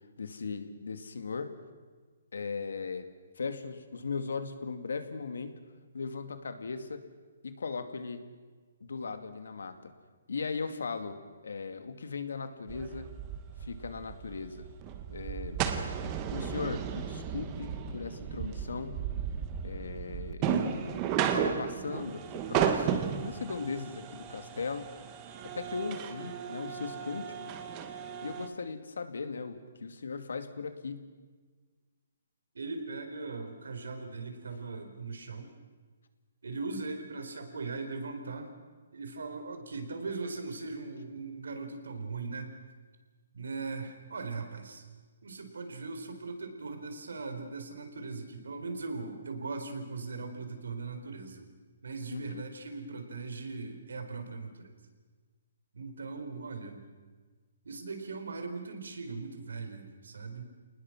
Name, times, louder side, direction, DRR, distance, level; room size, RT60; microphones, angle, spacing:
voice 1, 0.2-1.5 2.3-3.1 3.4-5.6 5.9-7.0 7.4-8.2 8.8-9.9 10.3-13.1 13.6-14.7 15.1-15.6 16.3-19.0 19.6-22.2 22.5-24.9 25.4-27.6 28.2-31.1 52.1-52.4, left 4 dB, 80° left, 8 dB, 2.4 m, -38 dB
sound 1, 12.7-28.5, right 8 dB, 20° right, 1.2 m, -34 dB
voice 2, 32.5-35.5 36.4-38.5 38.9-42.5 43.3-44.8 45.2-51.5 51.8-54.8 55.7-56.8 57.6-60.5, right 3 dB, 85° right, 6 dB, 4.2 m, -39 dB
29.0 x 19.5 x 6.2 m, 1.4 s
hypercardioid pair, 175°, 0 cm